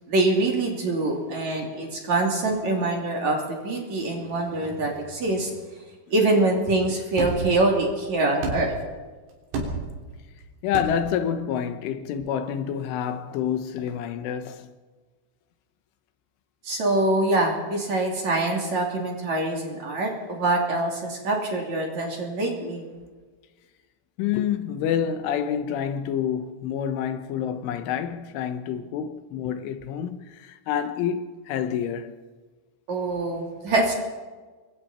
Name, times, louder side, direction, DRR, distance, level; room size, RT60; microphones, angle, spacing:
voice 1, 0.1-5.5 6.1-8.7 16.6-22.9 32.9-33.9, right 2 dB, 40° right, 3.9 m, -24 dB
sound 1, 7.2-7.6 8.4-8.9 9.5-10.0 10.7-11.2, right 3 dB, 80° right, 6.1 m, -30 dB
voice 2, 10.6-14.7 24.2-32.2, left 9 dB, 80° left, 3.6 m, -28 dB
27.0 x 23.5 x 4.4 m
omnidirectional pair, 5.6 m